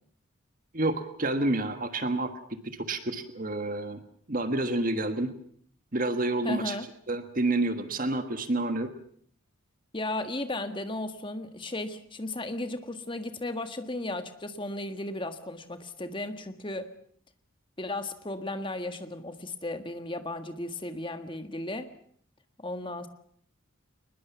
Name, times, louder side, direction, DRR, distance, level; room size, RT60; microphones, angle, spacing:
voice 1, 0.7-4.0 4.3-5.3 5.9-6.7 7.1-8.9, right 2 dB, 40° right, 9 dB, 1.4 m, -29 dB
voice 2, 6.4-6.8 9.9-16.9 17.8-21.9 22.6-23.1, left 2 dB, 25° left, 8 dB, 1.6 m, -35 dB
22.5 x 20.5 x 7.1 m, 0.62 s
head